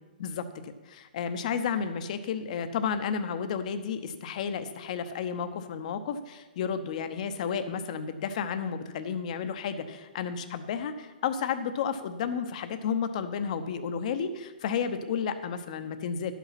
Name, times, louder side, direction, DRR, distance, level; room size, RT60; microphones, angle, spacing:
voice 1, 0.2-16.3, left 7 dB, 50° left, 9 dB, 0.8 m, -32 dB
11.5 x 5.9 x 5.8 m, 1.2 s
hypercardioid pair, 145°, 5 cm